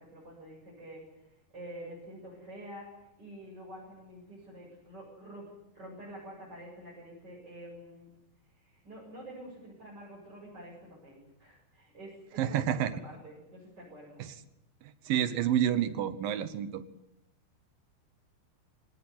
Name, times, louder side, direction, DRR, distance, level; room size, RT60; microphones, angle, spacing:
voice 1, 0.0-8.1 8.4-14.2, right 1 dB, 25° right, -5 dB, 8.1 m, -48 dB
voice 2, 12.4-12.9 14.2-14.3 14.8-16.8, right 10 dB, 70° right, 13 dB, 2.6 m, -29 dB
24.5 x 18.0 x 9.7 m, 0.87 s
omnidirectional pair, 4.5 m